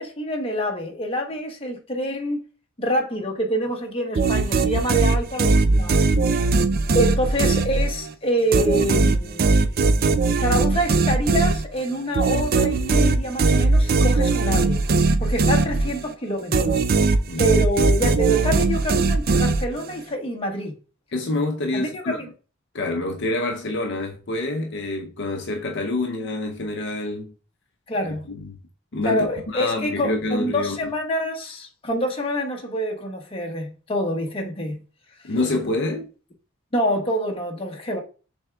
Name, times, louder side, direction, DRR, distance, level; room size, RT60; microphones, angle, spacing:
voice 1, 0.0-2.4 2.8-6.0 6.9-9.5 10.3-14.8 15.2-16.8 17.4-20.7 21.7-22.3 27.9-28.2 29.0-34.8 36.7-38.0, equal, 25° left, 1.0 m, -26 dB
sound 1, 4.1-8.1 8.5-16.1 16.5-20.0, right 3 dB, 45° right, 0.4 m, -20 dB
voice 2, 21.1-22.2 22.7-27.3 28.0-28.1 28.4-28.6 28.9-29.3 29.5-30.9 35.2-36.1, left 2 dB, 55° left, 0.6 m, -26 dB
6.3 x 3.5 x 2.3 m
head